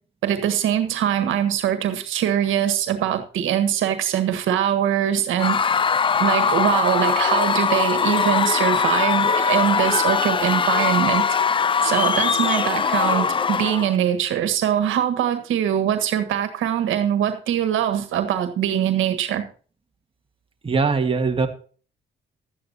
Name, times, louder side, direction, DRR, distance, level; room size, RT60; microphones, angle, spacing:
voice 1, 0.2-5.6 6.2-11.2 11.8-19.4, right 10 dB, 85° right, 1.6 m, -22 dB
Screaming / Cheering / Crowd, 5.4-14.0, left 6 dB, 25° left, 0.4 m, -21 dB
voice 2, 20.6-21.5, right 4 dB, 25° right, 1.9 m, -21 dB
12.5 x 8.9 x 4.1 m
cardioid pair, 90°, 20 cm